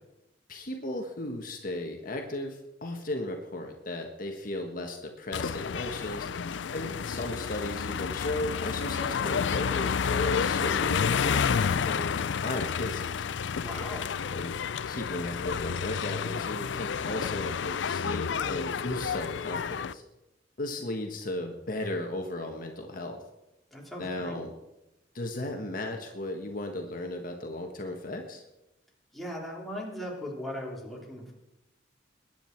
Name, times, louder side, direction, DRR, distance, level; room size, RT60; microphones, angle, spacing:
voice 1, 0.5-6.3 6.7-13.2 14.3-14.6 14.8-20.0 20.6-23.2 24.0-24.5 25.1-28.4, left 1 dB, 50° left, 3 dB, 1.5 m, -35 dB
sound 1, 5.3-19.9, left 6 dB, 85° left, 0.4 m, -30 dB
voice 2, 13.6-14.1 23.7-24.4 29.1-31.3, equal, ahead, -3 dB, 3.3 m, -38 dB
21.5 x 9.3 x 4.6 m, 0.92 s
head